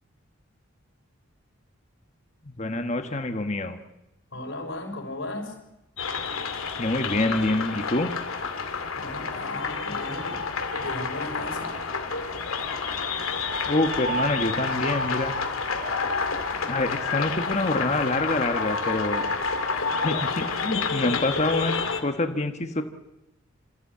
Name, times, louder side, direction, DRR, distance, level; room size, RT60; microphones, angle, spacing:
voice 1, 2.4-3.8 6.8-8.1 13.7-15.3 16.7-19.3 20.0-21.8 22.0-22.8, left 2 dB, 30° left, 6 dB, 1.4 m, -26 dB
voice 2, 4.3-5.5 9.0-10.4 10.8-11.7 21.0-21.1, left 1 dB, 65° left, 3 dB, 6.0 m, -35 dB
sound 1, 6.0-22.0, left 4 dB, 85° left, 2.5 m, -29 dB
28.0 x 15.0 x 8.6 m, 0.95 s
head